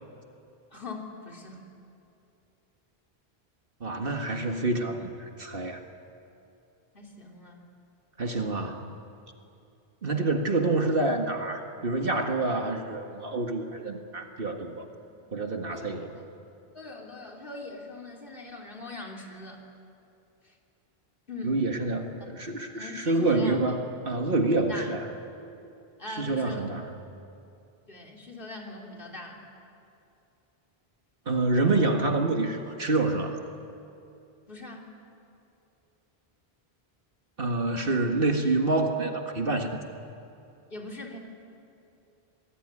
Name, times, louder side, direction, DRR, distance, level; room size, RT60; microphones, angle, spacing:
voice 1, 0.7-1.6 6.9-7.7 10.0-10.3 15.1-15.2 15.7-16.1 16.7-19.6 20.4-20.6 21.3-21.6 22.7-23.6 24.5-24.9 26.0-26.7 27.9-29.4 34.5-34.9 38.2-38.4 40.7-41.2, left 2 dB, 60° left, 0 dB, 3.6 m, -41 dB
voice 2, 3.8-5.8 8.2-8.9 10.0-14.9 15.3-16.1 21.4-25.1 26.2-26.8 31.3-33.4 37.4-39.8, right 2 dB, 65° right, 3 dB, 1.9 m, -27 dB
28.0 x 20.0 x 9.8 m, 2.7 s
omnidirectional pair, 1.0 m